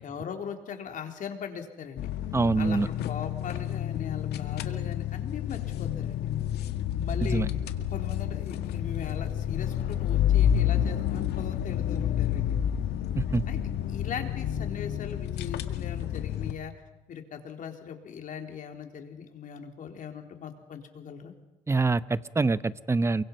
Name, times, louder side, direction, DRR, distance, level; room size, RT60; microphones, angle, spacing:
voice 1, 0.0-2.1 2.6-2.8 3.1-6.3 6.9-7.5 7.9-12.6 13.5-13.6 13.9-16.7 17.1-21.3, left 7 dB, 50° left, 4 dB, 3.9 m, -39 dB
sound 1, 2.0-16.5, left 10 dB, 75° left, 1.9 m, -29 dB
voice 2, 2.3-2.9 7.2-7.5 13.2-13.4 21.7-23.2, right 3 dB, 15° right, 15 dB, 0.8 m, -25 dB
29.0 x 24.0 x 5.6 m, 0.99 s
cardioid pair, 110°, 17 cm